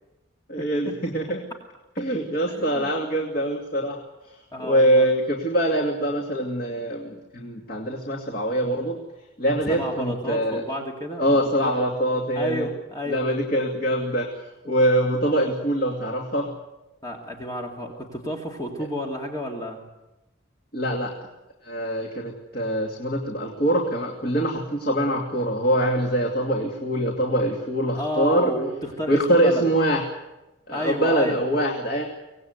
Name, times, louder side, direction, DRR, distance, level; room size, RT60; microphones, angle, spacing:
voice 1, 0.5-1.4 2.0-4.0 4.6-9.0 9.4-10.6 11.2-12.7 13.1-14.3 14.6-16.5 20.7-21.3 21.6-28.5 29.1-30.0 30.7-32.0, right 1 dB, 50° left, 1 dB, 2.7 m, -23 dB
voice 2, 2.5-3.0 4.5-5.1 9.7-11.2 11.6-11.7 12.3-13.3 17.0-19.8 27.9-29.7 30.7-31.4, equal, 20° left, 0 dB, 2.3 m, -31 dB
24.5 x 19.5 x 8.1 m, 1.0 s
head